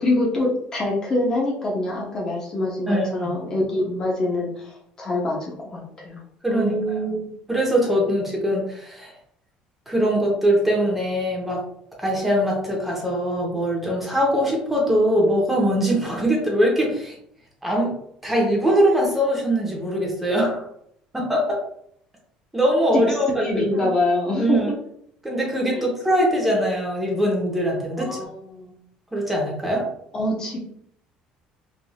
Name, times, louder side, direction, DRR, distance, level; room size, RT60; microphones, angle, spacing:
voice 1, 0.0-6.2 6.5-7.3 22.9-24.6 25.7-25.9 28.0-28.8 30.1-30.6, left 1 dB, 25° left, -3 dB, 0.7 m, -25 dB
voice 2, 2.9-3.3 6.4-7.2 7.5-9.1 9.9-11.6 12.0-17.2 17.6-17.9 18.2-20.6 21.1-21.6 22.5-23.9 24.4-24.7 25.2-28.2 29.1-29.8, equal, 5° right, -2 dB, 0.8 m, -22 dB
3.3 x 2.5 x 2.3 m, 0.69 s
cardioid pair, 145°, 3 cm